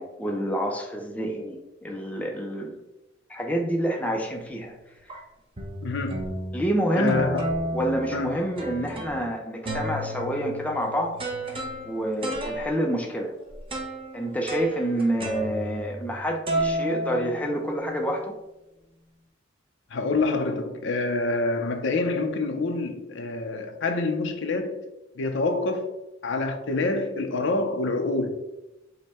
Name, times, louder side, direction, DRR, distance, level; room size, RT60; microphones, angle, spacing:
voice 1, 0.0-2.7 3.3-4.7 6.5-7.3 7.7-11.2 11.5-13.3 14.1-18.4, right 1 dB, 10° left, 0.4 m, -28 dB
sound 1, 4.1-4.5 5.1-5.2 5.6-6.6 7.1-9.3 9.7-16.2 16.5-17.9, right 1 dB, 30° right, 0.7 m, -32 dB
voice 2, 5.8-6.3 6.9-7.5 8.1-8.4 19.9-24.8 25.2-25.9 26.2-28.3, left 3 dB, 65° left, 0.6 m, -26 dB
5.2 x 2.1 x 4.2 m
head